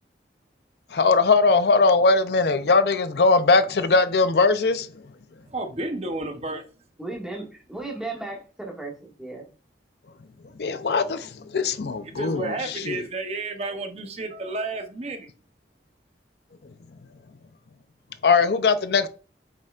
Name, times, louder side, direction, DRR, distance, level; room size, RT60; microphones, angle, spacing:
voice 1, 0.9-4.9 10.6-13.0 18.2-19.1, left 4 dB, 65° left, 0.5 m, -20 dB
voice 2, 5.5-6.6 12.1-15.3, right 2 dB, 35° right, 0.8 m, -31 dB
voice 3, 7.0-9.4, right 2 dB, 5° right, 1.8 m, -35 dB
8.6 x 6.2 x 2.4 m
head